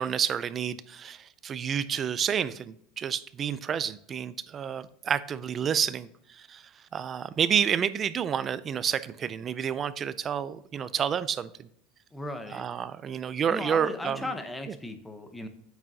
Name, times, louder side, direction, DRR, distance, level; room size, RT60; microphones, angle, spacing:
voice 1, 0.0-11.7 12.5-14.3, right 8 dB, 25° right, 15 dB, 0.4 m, -29 dB
voice 2, 12.1-12.6 13.5-15.5, left 1 dB, 5° left, 8 dB, 0.8 m, -36 dB
8.7 x 6.2 x 2.7 m, 0.70 s
supercardioid pair, 155°, 0 cm